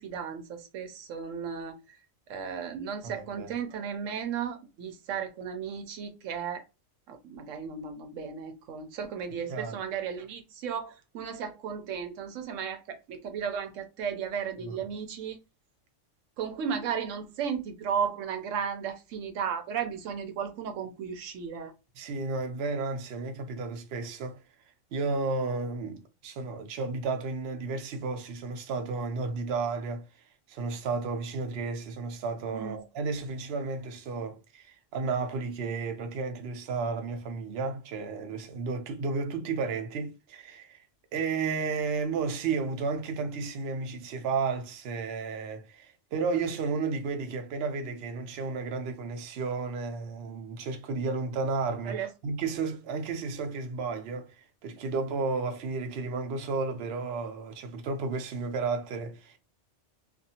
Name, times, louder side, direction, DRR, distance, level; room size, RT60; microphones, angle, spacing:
voice 1, 0.0-2.0 2.3-6.6 7.1-15.4 16.4-21.7 32.5-32.8 51.8-52.1, right 7 dB, 85° right, 1.0 m, -35 dB
voice 2, 3.0-3.5 9.5-9.8 14.6-14.8 22.0-24.4 24.9-40.8 41.1-59.4, right 4 dB, 60° right, 0.8 m, -33 dB
2.5 x 2.4 x 2.7 m
omnidirectional pair, 1.3 m